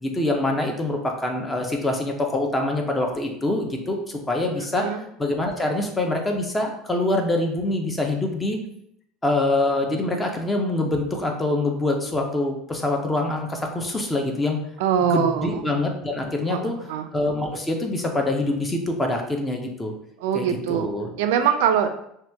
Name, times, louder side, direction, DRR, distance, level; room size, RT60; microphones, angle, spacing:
voice 1, 0.0-4.9 5.2-8.6 9.2-14.6 15.0-16.8 17.1-19.9 20.3-21.1, left 2 dB, 15° left, 3 dB, 0.5 m, -25 dB
voice 2, 4.7-5.0 14.8-15.6 16.5-17.1 20.2-20.9 21.2-21.9, right 8 dB, 85° right, 7 dB, 0.3 m, -23 dB
2.8 x 2.2 x 3.3 m, 0.73 s
supercardioid pair, 135°, 0 cm